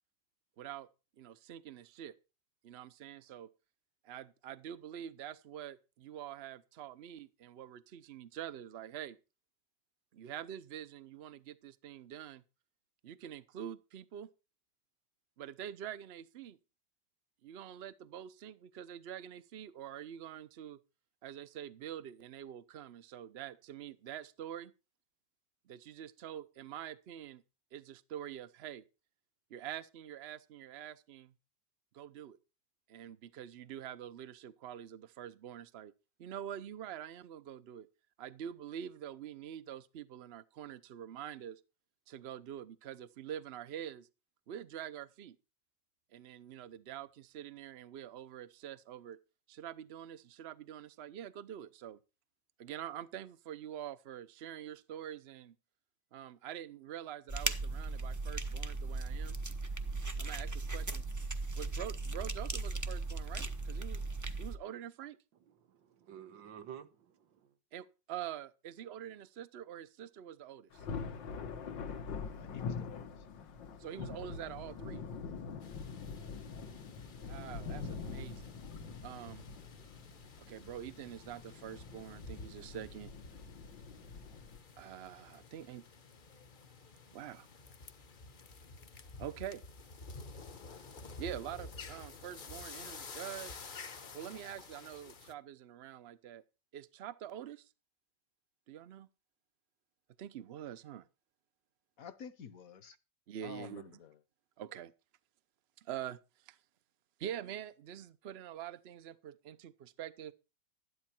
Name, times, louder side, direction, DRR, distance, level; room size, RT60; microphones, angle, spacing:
voice 1, 0.6-0.9 1.2-2.2 2.6-3.5 4.0-9.2 10.1-12.4 13.0-14.3 15.4-16.6 17.4-20.8 21.2-24.7 25.7-27.4 27.7-28.8 29.5-31.3 31.9-32.4 32.9-35.9 36.2-37.9 38.2-41.6 42.1-44.1 44.5-45.4 46.1-49.2 49.5-52.0 52.6-55.6 56.1-59.4 60.2-61.0 61.6-64.0 64.4-65.2 67.7-70.8 73.8-75.0 77.2-78.5 79.0-79.4 80.4-83.1 84.8-85.8 87.1-87.5 89.2-89.6 91.2-93.5 94.1-96.4 96.7-97.7 98.7-99.1 100.2-101.1 103.3-104.0 104.6-104.9 105.8-106.2 106.5-106.6 107.2-110.3, right 10 dB, 55° right, 0.7 m, -45 dB
sound 1, 57.3-64.6, right 3 dB, 20° right, 0.5 m, -37 dB
voice 2, 65.5-67.5, right 9 dB, 85° right, 1.9 m, -51 dB
Thunder, 70.7-84.6, left 5 dB, 90° left, 2.0 m, -44 dB
voice 3, 72.3-73.1 102.0-103.0 103.4-104.2, left 7 dB, 55° left, 1.3 m, -50 dB
sound 2, 75.6-95.3, left 3 dB, 35° left, 0.9 m, -51 dB
13.0 x 11.0 x 4.4 m
omnidirectional pair, 1.9 m